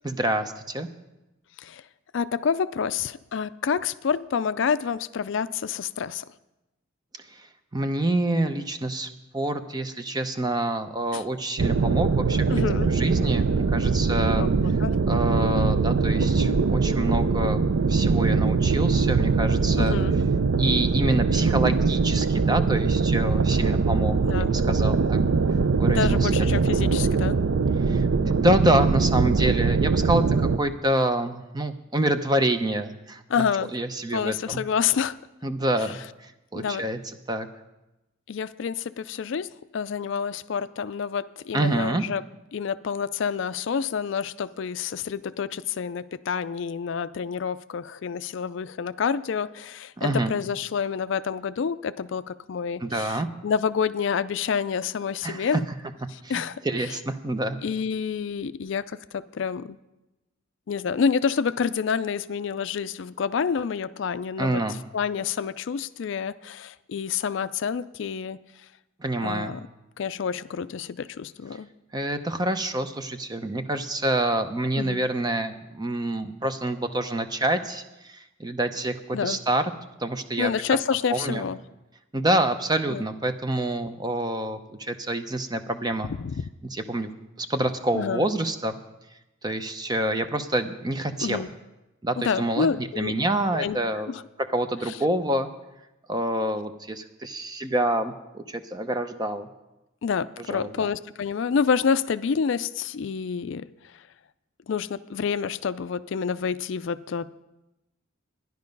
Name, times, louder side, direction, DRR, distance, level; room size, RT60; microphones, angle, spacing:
voice 1, 0.0-0.9 7.3-7.5 7.7-14.5 15.1-17.6 17.9-20.0 20.6-25.2 25.8-26.5 27.9-33.2 33.7-34.6 35.4-37.0 37.3-37.5 41.5-42.0 50.0-50.3 52.8-53.3 55.2-55.6 56.2-57.6 64.4-64.8 69.0-69.5 71.9-79.6 80.0-80.5 81.1-81.4 82.1-86.1 86.7-87.1 87.4-88.8 89.4-91.4 92.0-94.1 94.5-95.5 96.1-99.5 100.5-100.9, right 1 dB, 20° right, 8 dB, 0.6 m, -27 dB
voice 2, 2.1-6.2 11.1-11.2 12.5-12.9 14.4-15.0 19.8-20.2 24.2-24.5 25.9-27.4 33.3-33.7 34.1-35.2 36.5-36.8 38.3-42.2 42.5-55.6 56.1-56.6 57.6-59.8 60.7-64.6 64.9-68.4 69.2-69.6 70.0-71.7 74.8-75.0 79.1-79.4 80.4-81.6 82.9-83.0 86.2-86.5 87.9-88.2 91.2-91.5 92.2-93.2 93.5-93.8 94.1-94.2 94.8-94.9 100.0-103.7 104.7-107.4, left 6 dB, 60° left, 14 dB, 0.4 m, -28 dB
sound 1, 11.6-30.6, right 4 dB, 60° right, 0.5 m, -22 dB
13.5 x 10.5 x 5.3 m, 0.98 s
head